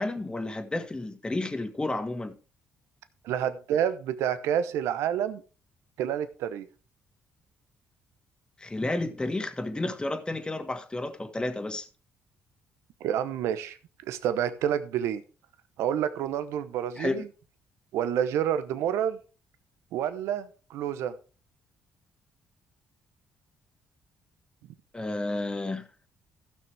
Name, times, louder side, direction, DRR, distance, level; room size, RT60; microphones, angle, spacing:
voice 1, 0.0-2.3 8.6-11.9 17.0-17.2 24.9-25.9, left 2 dB, 20° left, 1.7 m, -31 dB
voice 2, 3.2-5.4 6.0-6.7 13.0-13.8 14.0-15.2 15.8-17.3 17.9-19.2 19.9-21.2, right 9 dB, 80° right, 0.8 m, -28 dB
15.5 x 6.3 x 3.4 m
supercardioid pair, 65°, 5 cm